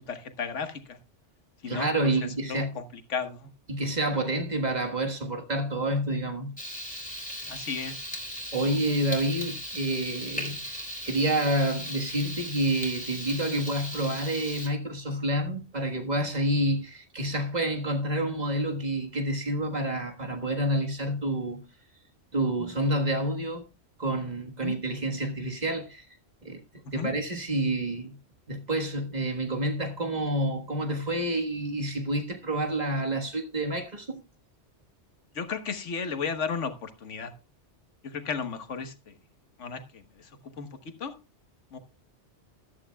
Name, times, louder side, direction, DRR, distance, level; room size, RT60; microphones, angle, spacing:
voice 1, 0.1-1.0 1.6-2.1 2.5-3.5 7.5-8.0 24.6-24.7 26.8-27.1 35.3-37.3 38.0-39.1 39.6-40.7 41.0-41.1 41.7-41.8, left 5 dB, 85° left, 1.5 m, -34 dB
voice 2, 1.7-2.8 3.7-6.5 8.5-10.6 11.0-21.6 22.3-23.6 24.0-26.1 26.4-26.6 26.9-28.2 28.5-34.2, right 1 dB, 35° right, 1.6 m, -28 dB
Frying (food), 6.6-14.7, equal, 5° left, 3.1 m, -38 dB
14.0 x 11.5 x 2.3 m
omnidirectional pair, 1.2 m